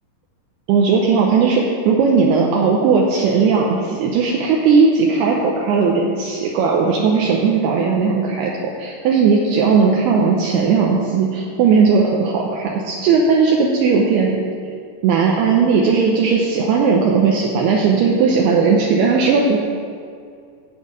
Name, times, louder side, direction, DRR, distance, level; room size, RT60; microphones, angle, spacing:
voice 1, 0.7-8.5 8.8-14.4 15.0-19.6, right 5 dB, 85° right, -2 dB, 2.3 m, -17 dB
12.0 x 4.7 x 8.5 m, 2.2 s
omnidirectional pair, 5.7 m